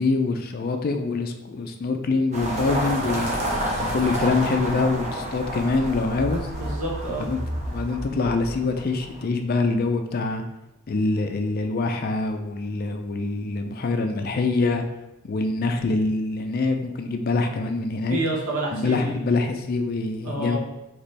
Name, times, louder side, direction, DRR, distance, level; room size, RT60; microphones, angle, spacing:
voice 1, 0.0-3.5 3.9-6.5 7.2-7.4 7.7-10.4 10.9-14.8 15.2-18.2 18.7-20.6, left 3 dB, 40° left, 6 dB, 0.3 m, -25 dB
sound 1, 2.3-9.2, right 1 dB, 30° right, 0.8 m, -29 dB
voice 2, 6.6-7.3 18.1-19.2 20.2-20.6, right 2 dB, 70° right, -4 dB, 1.2 m, -28 dB
3.2 x 3.0 x 4.1 m, 0.93 s
head